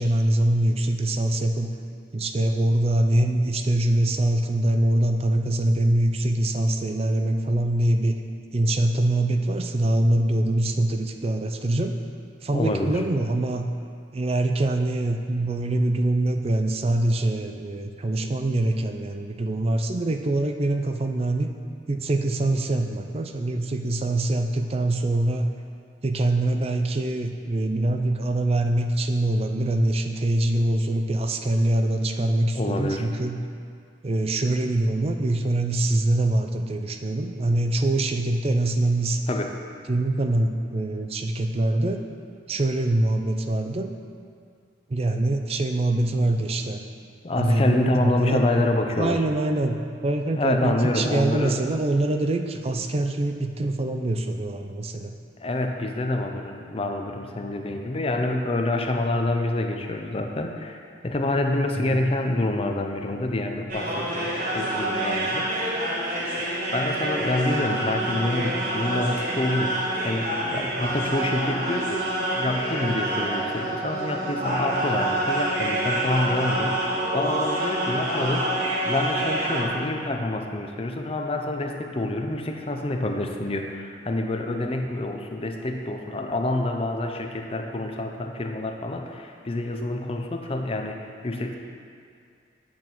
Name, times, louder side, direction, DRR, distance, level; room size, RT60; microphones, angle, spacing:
voice 1, 0.0-1.7 2.1-8.2 8.5-11.9 12.4-13.7 14.1-21.5 21.9-25.5 26.0-33.4 34.0-39.2 39.9-42.0 42.5-43.9 44.9-46.8 47.4-48.6 49.0-55.1 61.8-62.1, right 1 dB, 35° right, 5 dB, 0.5 m, -24 dB
voice 2, 12.5-13.0 32.5-33.0 39.3-39.5 47.2-49.2 50.4-51.6 55.4-65.5 66.4-78.6 78.9-91.6, left 2 dB, 30° left, 4 dB, 0.6 m, -27 dB
sound 1, 63.7-79.6, right 1 dB, 55° right, 1.6 m, -27 dB
8.7 x 4.2 x 6.1 m, 2.3 s
head